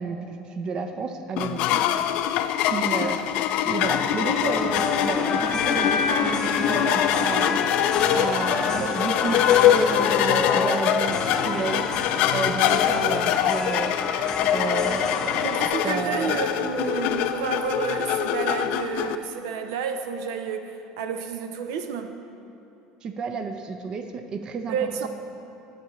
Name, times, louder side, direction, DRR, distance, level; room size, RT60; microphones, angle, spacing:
voice 1, 0.0-1.8 2.7-3.2 3.6-7.6 8.1-11.9 12.3-14.2 14.5-15.5 15.8-16.4 23.0-24.8, right 4 dB, 40° right, 7 dB, 0.5 m, -31 dB
sound 1, 1.4-19.2, left 11 dB, 65° left, 0.3 m, -24 dB
sound 2, 3.9-15.7, left 4 dB, 35° left, 0.7 m, -28 dB
voice 2, 15.4-22.2 24.7-25.1, right 6 dB, 90° right, 7 dB, 0.5 m, -30 dB
9.5 x 8.4 x 3.1 m, 2.8 s
supercardioid pair, 125°, 2 cm